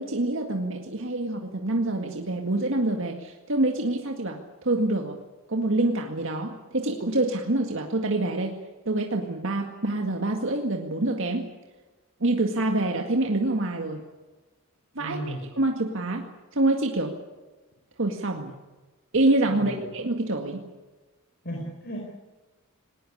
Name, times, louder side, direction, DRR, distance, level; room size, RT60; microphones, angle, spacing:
voice 1, 0.0-5.2 5.5-8.6 8.9-11.5 12.2-14.0 15.0-16.3 16.5-17.1 18.0-18.5 19.1-20.6, right 2 dB, 60° right, 3 dB, 1.9 m, -26 dB
voice 2, 15.0-15.4 19.5-19.9 21.4-22.0, right 1 dB, 50° left, 0 dB, 4.6 m, -35 dB
19.5 x 19.5 x 9.9 m, 1.2 s
head